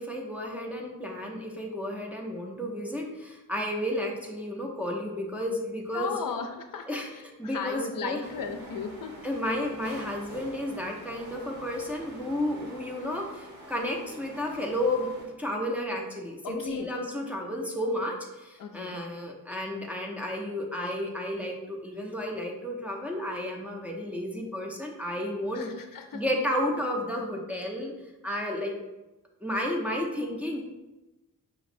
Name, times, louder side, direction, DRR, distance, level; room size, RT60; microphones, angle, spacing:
voice 1, 0.0-6.2 6.9-8.3 9.2-25.7 26.1-27.9 28.2-28.7 29.4-30.6, left 1 dB, 5° right, -1 dB, 0.5 m, -32 dB
voice 2, 5.9-9.2 16.4-16.9 18.6-19.0 25.5-26.2, left 5 dB, 75° left, 6 dB, 0.5 m, -36 dB
sound 1, 8.2-15.3, right 1 dB, 65° right, 1.1 m, -47 dB
5.0 x 3.0 x 2.5 m, 1.0 s
wide cardioid pair, 125°, 34 cm